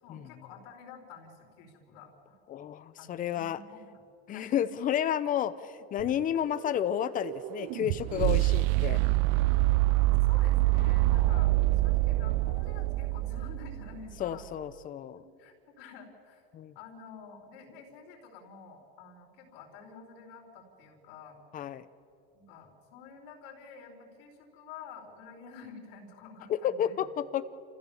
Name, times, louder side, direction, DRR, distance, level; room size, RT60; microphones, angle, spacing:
voice 1, 0.0-2.4 3.0-4.0 4.3-4.7 10.3-14.4 15.4-16.4 16.7-21.4 22.3-27.0, left 5 dB, 70° left, 1 dB, 4.7 m, -49 dB
voice 2, 2.5-3.6 4.3-9.0 14.2-15.2 16.5-16.8 21.5-21.9 26.5-27.4, left 10 dB, 30° left, 14 dB, 0.8 m, -31 dB
sound 1, 6.0-14.1, right 19 dB, 50° right, 0.5 m, -26 dB
28.5 x 15.0 x 7.2 m, 2.4 s
supercardioid pair, 145°, 29 cm